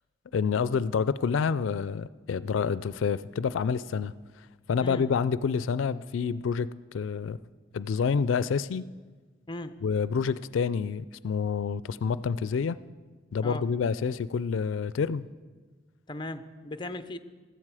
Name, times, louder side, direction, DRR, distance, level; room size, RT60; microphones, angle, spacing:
voice 1, 0.3-4.1 4.7-7.4 7.7-8.9 9.8-12.8 13.3-15.2, left 6 dB, 90° left, 16 dB, 0.4 m, -28 dB
voice 2, 16.1-17.2, left 2 dB, 25° left, 10 dB, 0.6 m, -37 dB
15.0 x 14.0 x 4.9 m, 1.4 s
head